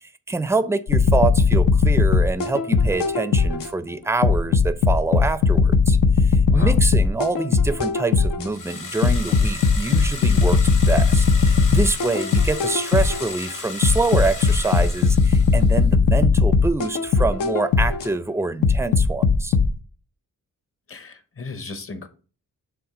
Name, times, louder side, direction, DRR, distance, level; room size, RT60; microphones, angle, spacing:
voice 1, 0.3-6.0 6.2-19.6, right 3 dB, 10° right, 0.3 m, -25 dB
sound 1, 0.9-3.7 4.2-8.5 9.0-13.3 13.8-18.1 18.6-19.7, left 5 dB, 90° left, 0.8 m, -18 dB
sound 2, 8.5-15.8, left 4 dB, 70° left, 1.5 m, -35 dB
voice 2, 20.9-22.1, left 3 dB, 40° left, 0.8 m, -35 dB
7.0 x 3.6 x 4.9 m
wide cardioid pair, 135°, 32 cm